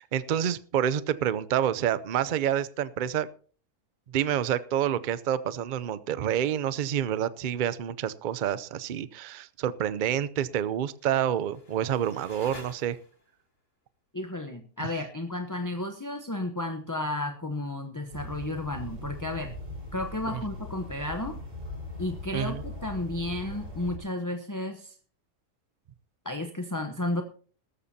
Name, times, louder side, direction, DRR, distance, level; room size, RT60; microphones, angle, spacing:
voice 1, 0.0-3.3 4.1-13.0 14.8-14.9 20.3-20.4 22.3-22.6, right 10 dB, 65° right, 0.4 m, -28 dB
sound 1, 11.0-13.4, left 2 dB, 40° left, 2.3 m, -49 dB
voice 2, 14.1-19.5 19.9-21.4 22.0-25.0 26.2-27.2, left 1 dB, 20° left, 0.6 m, -33 dB
sound 2, 18.1-24.0, left 1 dB, 35° right, 4.8 m, -40 dB
18.0 x 13.5 x 2.8 m
omnidirectional pair, 1.7 m